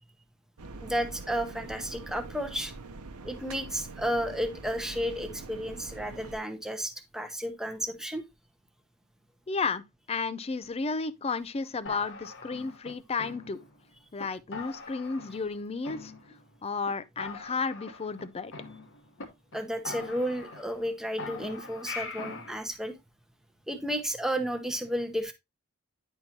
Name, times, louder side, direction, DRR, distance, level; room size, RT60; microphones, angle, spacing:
sound 1, 0.6-6.4, right 3 dB, 75° right, 0.8 m, -44 dB
voice 1, 0.8-2.7 3.2-8.2 19.5-23.0 23.7-25.3, equal, ahead, 0.8 m, -32 dB
voice 2, 9.5-9.8 10.1-13.6 14.1-16.1 16.6-18.5, left 4 dB, 25° left, 0.4 m, -32 dB
sound 2, 11.9-13.8 14.2-14.3 14.5-15.6 15.9-16.6 16.9-17.0 17.2-19.2 19.5-19.6 19.9-20.9 21.2-22.5, left 4 dB, 60° left, 1.2 m, -42 dB
10.0 x 4.5 x 2.8 m
head